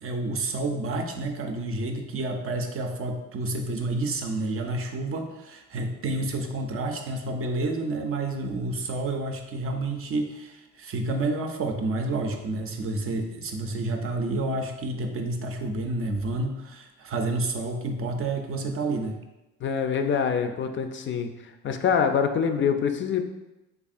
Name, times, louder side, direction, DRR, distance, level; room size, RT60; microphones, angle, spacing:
voice 1, 0.0-19.2, right 2 dB, 45° right, 4 dB, 0.5 m, -29 dB
voice 2, 19.6-21.3 21.6-23.3, left 7 dB, 40° left, 7 dB, 0.4 m, -25 dB
3.5 x 3.4 x 2.4 m, 0.98 s
cardioid pair, 90°, 30 cm